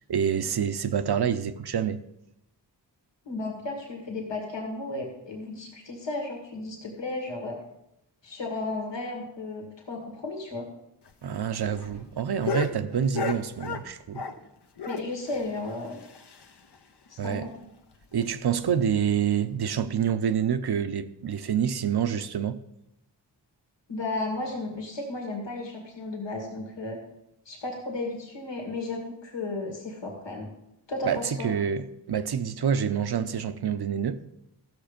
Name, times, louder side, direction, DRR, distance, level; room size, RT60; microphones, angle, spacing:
voice 1, 0.1-2.0 11.2-14.2 17.2-17.5 18.1-22.6 31.0-34.2, right 8 dB, 60° right, 0.8 m, -27 dB
voice 2, 3.3-7.6 8.2-10.7 14.9-16.0 17.1-17.5 23.9-27.0 27.5-30.5 30.9-31.5, left 2 dB, 85° left, 2.1 m, -34 dB
sound 1, 11.0-14.5 14.8-16.8 17.1-17.2 17.4-17.5 17.9-18.0 18.6-18.9 19.7-19.9, left 4 dB, 65° left, 1.0 m, -35 dB
14.5 x 6.8 x 5.1 m
cardioid pair, 65°, 43 cm